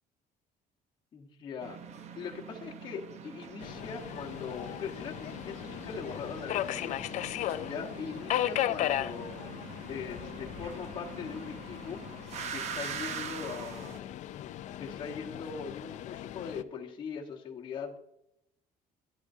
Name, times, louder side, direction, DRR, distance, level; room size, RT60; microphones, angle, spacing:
voice 1, 1.1-1.8 2.1-7.0 7.6-14.2 14.8-18.0, left 6 dB, 30° left, -2 dB, 1.3 m, -41 dB
sound 1, 1.6-14.0, right 7 dB, 45° right, 0.9 m, -44 dB
Subway metro underground, 3.6-16.6, left 12 dB, 50° left, 0.4 m, -37 dB
13.0 x 12.0 x 2.7 m, 0.82 s
cardioid pair, 175°, 16 cm